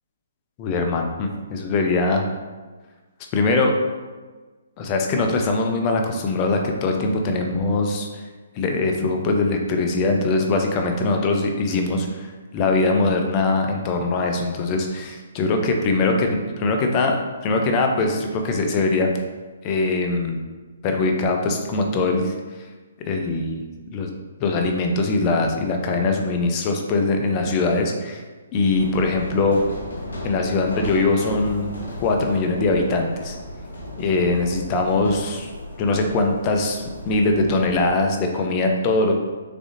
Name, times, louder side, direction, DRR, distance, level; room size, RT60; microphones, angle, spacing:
voice 1, 0.6-2.2 3.3-3.7 4.8-8.2 8.6-19.1 19.6-20.4 20.8-22.3 23.0-23.7 23.9-24.1 24.4-28.2 28.5-29.6 30.2-31.7 32.0-33.4 34.0-35.5 35.8-39.1, left 3 dB, 30° left, 3 dB, 0.5 m, -22 dB
sound 1, 28.7-37.9, equal, 85° left, 1.2 m, -35 dB
3.6 x 3.4 x 2.6 m, 1.3 s
hypercardioid pair, 150°, 0 cm